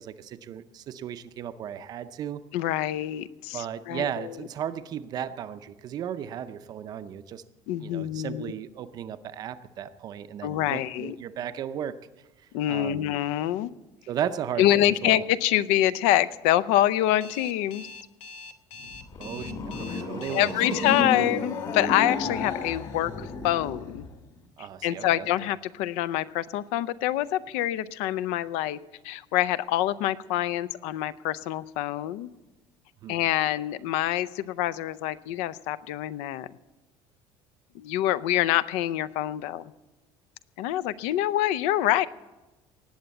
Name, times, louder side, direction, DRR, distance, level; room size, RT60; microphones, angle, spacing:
voice 1, 0.0-2.4 3.5-7.4 7.8-12.0 12.7-13.1 14.1-15.2 19.2-20.9 24.6-25.3 33.0-33.2, right 9 dB, 35° right, 12 dB, 0.6 m, -35 dB
voice 2, 2.5-4.5 7.7-8.5 10.4-11.2 12.5-13.7 14.6-17.9 20.2-24.0 24.6-28.8 29.0-32.3 33.1-36.5 37.7-39.6 40.6-42.1, left 13 dB, 80° left, 16 dB, 0.6 m, -26 dB
Alarm, 17.2-21.0, left 3 dB, 60° left, 1.0 m, -43 dB
sound 1, 18.8-24.1, left 4 dB, 40° left, 1.7 m, -32 dB
18.5 x 7.9 x 8.2 m, 1.1 s
cardioid pair, 175°, 12 cm